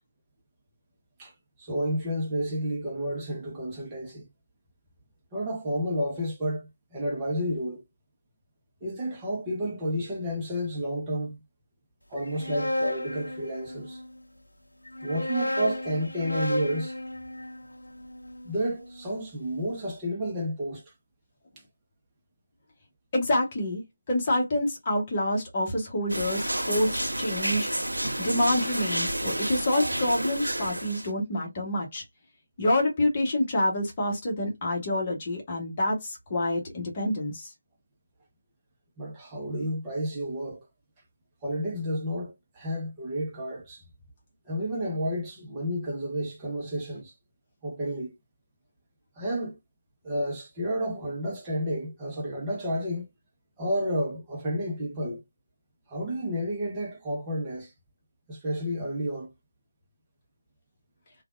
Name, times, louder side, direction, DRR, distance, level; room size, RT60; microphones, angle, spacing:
voice 1, 1.2-4.3 5.3-7.8 8.8-11.4 12.1-14.0 15.0-17.0 18.4-20.8 39.0-40.7 41.4-43.8 44.5-47.1 47.6-48.2 49.2-49.6 50.0-53.1 53.6-55.2 55.9-57.7 58.3-59.3, equal, 15° right, 0.8 m, -31 dB
sound 1, 12.2-14.1 14.9-19.0, left 1 dB, 85° left, 0.6 m, -33 dB
voice 2, 23.1-23.8 24.1-27.7 28.2-32.0 32.6-37.5, left 1 dB, 30° left, 1.2 m, -27 dB
sound 2, 26.1-31.1, right 1 dB, 90° right, 0.7 m, -30 dB
3.1 x 2.4 x 2.5 m
figure-of-eight pair, 155°, 0 cm